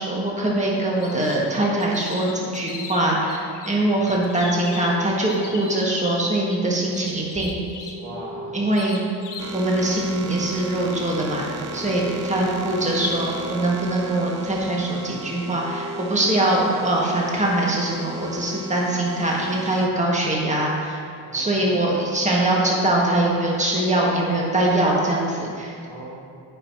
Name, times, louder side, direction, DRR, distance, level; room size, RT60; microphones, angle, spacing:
voice 1, 0.0-7.9 8.5-9.0 9.5-11.5 11.7-21.0 21.3-25.8, right 1 dB, 15° right, -3 dB, 1.7 m, -22 dB
sound 1, 1.0-1.5 1.8-3.7 4.0-6.2 6.9-8.0 8.7-9.5, left 5 dB, 55° left, 1.1 m, -38 dB
sound 2, 7.9-18.6, right 1 dB, 75° left, 1.2 m, -40 dB
voice 2, 8.0-8.6 11.6-12.2 21.2-21.8 25.8-26.2, right 2 dB, 75° right, -4 dB, 1.7 m, -39 dB
sound 3, 9.4-19.9, right 4 dB, 35° right, 0.6 m, -37 dB
9.0 x 5.8 x 2.9 m, 2.3 s
hypercardioid pair, 50°, 50 cm